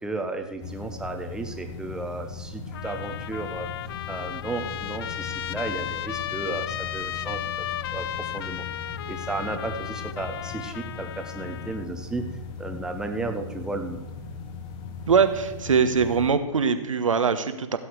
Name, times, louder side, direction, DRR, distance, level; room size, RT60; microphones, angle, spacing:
voice 1, 0.0-3.7 4.1-7.7 7.9-8.0 8.3-8.6 9.1-12.2 12.6-14.0, right 2 dB, 5° right, 5 dB, 1.1 m, -33 dB
sound 1, 0.6-16.3, left 4 dB, 30° left, 1.3 m, -39 dB
Trumpet, 2.7-11.9, left 12 dB, 45° left, 0.5 m, -35 dB
voice 2, 15.1-17.8, right 6 dB, 80° right, 10 dB, 1.3 m, -22 dB
16.0 x 7.8 x 4.7 m, 1.2 s
hypercardioid pair, 130°, 17 cm